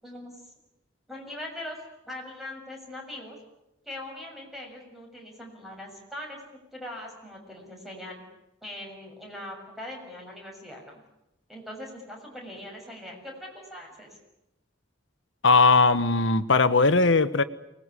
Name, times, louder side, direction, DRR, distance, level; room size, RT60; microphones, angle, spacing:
voice 1, 0.0-0.3 1.1-1.8 2.1-3.4 3.8-8.2 8.6-11.0 11.5-14.2, left 1 dB, ahead, 0 dB, 6.7 m, -41 dB
voice 2, 15.4-17.4, left 3 dB, 80° left, 12 dB, 1.3 m, -19 dB
24.5 x 20.0 x 9.9 m, 0.90 s
head